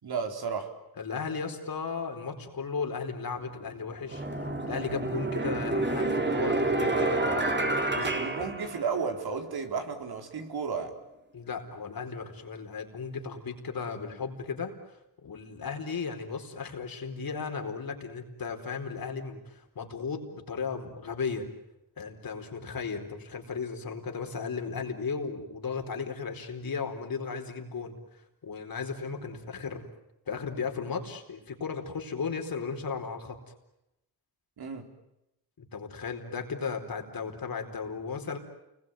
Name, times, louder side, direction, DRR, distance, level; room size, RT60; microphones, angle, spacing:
voice 1, 0.0-0.7 8.1-10.9 34.6-34.8, right 5 dB, 70° right, 5 dB, 4.3 m, -33 dB
voice 2, 1.0-4.2 4.6-8.1 11.3-21.5 22.0-29.8 30.3-33.4 35.6-38.4, left 5 dB, 60° left, 4 dB, 4.5 m, -35 dB
sound 1, 3.4-3.5 4.1-9.3, right 2 dB, 30° right, 3.2 m, -29 dB
29.5 x 21.5 x 9.2 m, 0.88 s
cardioid pair, 95°, 39 cm